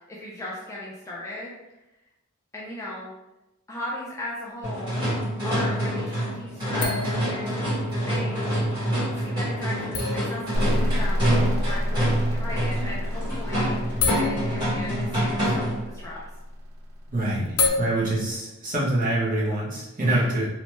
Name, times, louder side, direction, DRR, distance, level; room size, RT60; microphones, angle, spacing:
voice 1, 0.1-1.5 2.5-3.1 3.7-4.9 5.4-7.5 8.1-8.5 9.2-13.8 14.2-16.2 20.1-20.3, left 1 dB, 15° left, -5 dB, 0.4 m, -37 dB
sound 1, 4.3-4.4 6.8-8.2 9.0-9.1 9.9-11.8 13.1-13.3 13.6-15.7 17.4-17.7, left 4 dB, 75° left, 0.6 m, -30 dB
sound 2, 4.6-15.9, equal, 20° right, 1.5 m, -26 dB
sound 3, 10.5-18.1, equal, 60° right, 0.4 m, -29 dB
voice 2, 17.1-20.5, right 1 dB, 35° right, -6 dB, 0.9 m, -25 dB
3.1 x 2.1 x 3.1 m, 0.97 s
head